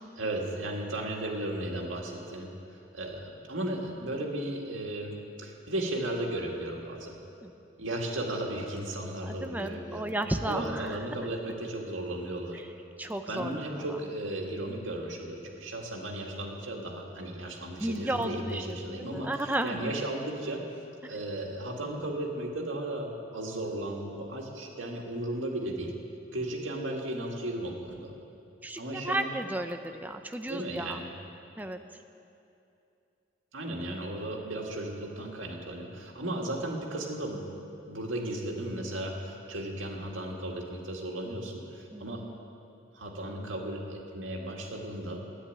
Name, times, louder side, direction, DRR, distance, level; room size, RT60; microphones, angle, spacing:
voice 1, 0.2-2.5 2.9-7.2 7.8-10.1 10.5-12.6 13.3-20.6 21.0-25.9 26.3-28.1 28.8-29.3 30.5-31.1 33.5-37.4 37.8-42.2 42.9-45.2, right 1 dB, 85° right, 0 dB, 1.9 m, -35 dB
voice 2, 9.3-11.0 12.5-12.7 13.0-14.0 17.8-19.9 21.0-21.1 28.6-31.0 31.6-31.8 41.9-42.3, right 1 dB, 10° right, 6 dB, 0.5 m, -34 dB
11.5 x 9.6 x 8.8 m, 2.7 s
head